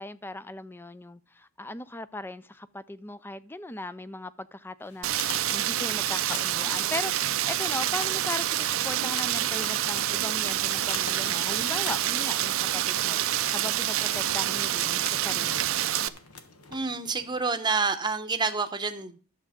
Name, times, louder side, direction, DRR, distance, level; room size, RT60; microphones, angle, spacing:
voice 1, 0.0-15.8, left 2 dB, 10° left, 0.4 m, -38 dB
sound 1, 4.8-17.5, left 5 dB, 90° left, 1.4 m, -45 dB
Rain, 5.0-16.1, right 12 dB, 65° right, 0.5 m, -27 dB
voice 2, 16.7-19.2, right 4 dB, 20° right, 0.8 m, -28 dB
11.0 x 7.3 x 5.0 m
head